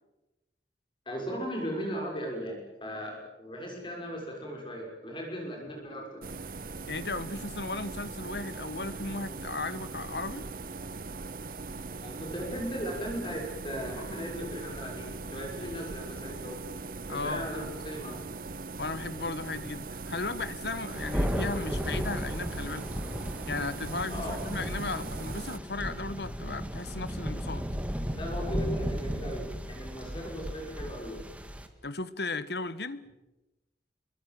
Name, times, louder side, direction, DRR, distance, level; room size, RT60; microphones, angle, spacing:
voice 1, 1.1-6.4 12.0-16.6 17.1-18.2 24.1-24.4 28.1-31.3, equal, 30° left, 6.5 m, -37 dB
sound 1, 6.2-25.6, right 3 dB, 50° right, 0.9 m, -40 dB
voice 2, 6.9-10.4 17.1-17.5 18.8-22.9 23.5-27.6 31.8-33.0, left 3 dB, 70° left, 1.4 m, -35 dB
Thunder, 20.9-31.7, equal, 10° right, 2.0 m, -35 dB
27.0 x 23.5 x 7.8 m
head